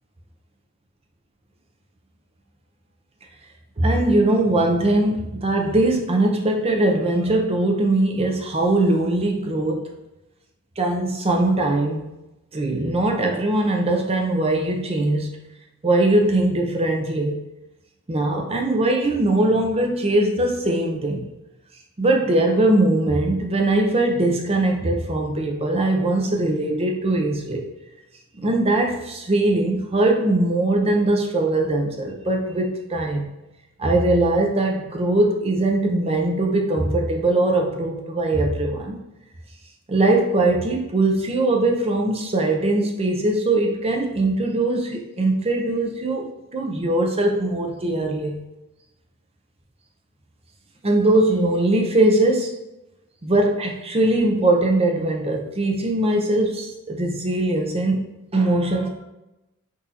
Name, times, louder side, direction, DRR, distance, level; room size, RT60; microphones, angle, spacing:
voice 1, 3.8-9.8 10.8-12.1 12.5-15.4 15.8-17.4 18.1-21.3 22.0-27.6 28.4-33.3 33.8-39.0 39.9-48.4 50.8-52.6 53.2-58.9, right 2 dB, 30° right, 1 dB, 0.6 m, -21 dB
6.1 x 2.6 x 2.8 m, 0.96 s
head